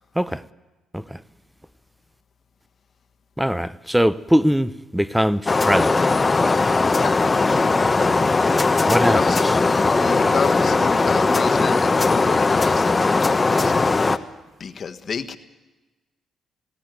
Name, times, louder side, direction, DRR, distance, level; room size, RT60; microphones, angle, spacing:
voice 1, 3.4-6.0 8.9-9.2, equal, 5° right, 0.7 m, -21 dB
sound 1, 5.5-14.2, left 3 dB, 30° left, 1.0 m, -19 dB
voice 2, 8.9-9.4 10.0-14.3 14.6-15.4, left 6 dB, 50° left, 1.3 m, -30 dB
19.0 x 16.5 x 9.3 m
supercardioid pair, 70°, 0 cm